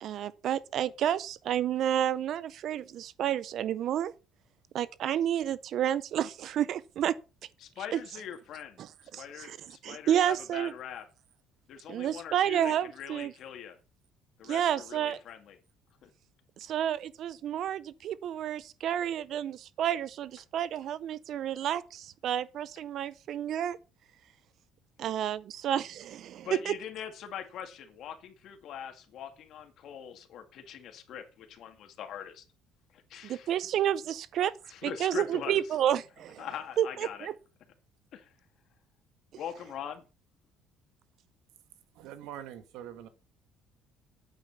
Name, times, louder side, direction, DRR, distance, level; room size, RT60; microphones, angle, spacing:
voice 1, 0.0-4.1 4.7-7.2 7.9-8.0 9.1-9.6 9.8-10.7 11.9-13.3 14.4-15.2 16.6-23.8 25.0-26.8 33.2-34.5 34.8-36.4 36.8-37.3, right 10 dB, 50° right, 0.5 m, -30 dB
voice 2, 7.6-11.1 11.7-13.8 14.4-15.6 16.0-16.1 26.4-32.4 32.9-33.5 34.7-35.6 36.4-37.3 38.1-38.3 39.4-40.0, left 8 dB, 55° left, 2.2 m, -42 dB
voice 3, 41.9-43.1, right 11 dB, 85° right, 1.9 m, -44 dB
9.0 x 8.6 x 5.8 m
cardioid pair, 155°, 0 cm